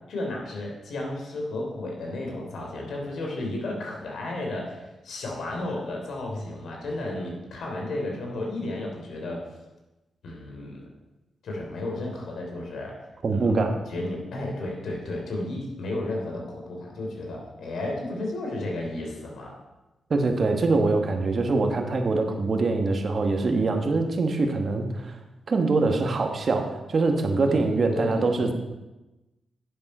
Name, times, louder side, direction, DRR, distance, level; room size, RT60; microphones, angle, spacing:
voice 1, 0.1-9.5 10.2-10.8 11.4-13.0 13.3-13.6 13.9-19.5 27.5-28.5, left 2 dB, 80° left, 0 dB, 3.1 m, -33 dB
voice 2, 13.2-13.7 20.1-25.1 25.5-28.5, right 3 dB, 55° right, 4 dB, 1.4 m, -24 dB
10.5 x 7.5 x 5.5 m, 1.0 s
cardioid pair, 60°, 0 cm